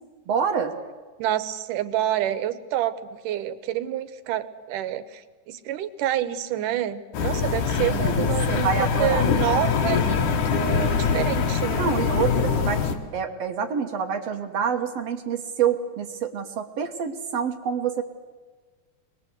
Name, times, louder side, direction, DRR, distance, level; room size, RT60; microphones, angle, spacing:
voice 1, 0.3-0.8 7.8-9.3 11.8-18.0, right 7 dB, 60° right, 6 dB, 2.1 m, -27 dB
voice 2, 1.2-3.0 3.2-8.7 9.0-11.9, right 12 dB, 85° right, 12 dB, 2.5 m, -28 dB
sound 1, 7.1-12.9, left 6 dB, 75° left, 3.0 m, -23 dB
23.5 x 20.5 x 8.0 m, 1.4 s
omnidirectional pair, 3.6 m